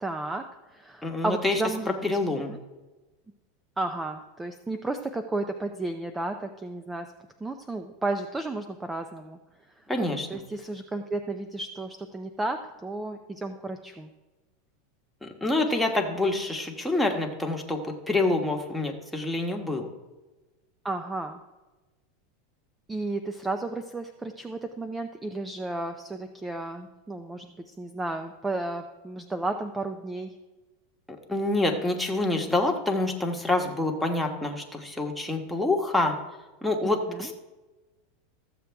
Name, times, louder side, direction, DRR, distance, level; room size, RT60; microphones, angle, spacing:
voice 1, 0.0-2.0 2.5-2.6 3.8-7.1 7.4-9.4 9.8-9.9 10.3-14.1 20.8-21.4 22.9-30.4 36.8-37.3, right 2 dB, 10° right, 7 dB, 0.6 m, -33 dB
voice 2, 1.0-1.6 2.0-2.5 9.9-10.4 15.2-19.9 31.3-36.1 36.6-37.4, left 2 dB, 5° left, 1 dB, 1.4 m, -27 dB
14.0 x 7.5 x 3.5 m, 1.1 s
supercardioid pair, 125°, 0 cm